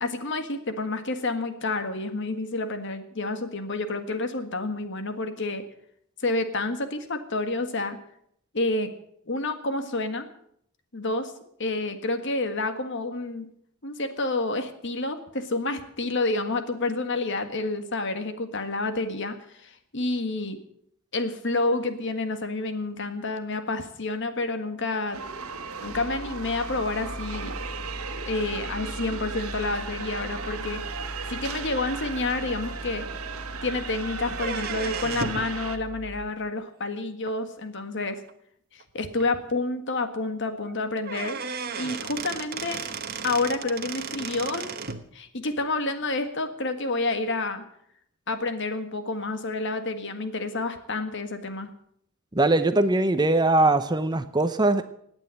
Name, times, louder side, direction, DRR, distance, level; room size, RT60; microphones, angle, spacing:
voice 1, 0.0-5.7 6.2-8.0 8.5-8.9 9.3-10.3 10.9-11.3 11.6-13.5 13.8-20.6 21.1-25.2 25.8-27.5 28.3-30.8 31.3-33.0 33.6-38.2 38.7-41.4 41.8-42.8 43.2-44.7 45.1-47.6 48.3-51.7, left 2 dB, 55° left, 8 dB, 1.7 m, -29 dB
sound 1, 25.1-35.8, right 5 dB, 85° right, 1.4 m, -36 dB
sound 2, 25.8-36.3, equal, 10° left, 2.2 m, -40 dB
sound 3, 34.3-35.5 37.3-37.4 38.3-38.4 38.8-38.9 39.2-39.3 40.7-40.8 41.0-45.0, right 5 dB, 45° right, 1.1 m, -34 dB
voice 2, 52.3-54.8, right 2 dB, 20° right, 11 dB, 0.7 m, -21 dB
18.0 x 9.0 x 7.7 m, 0.70 s
head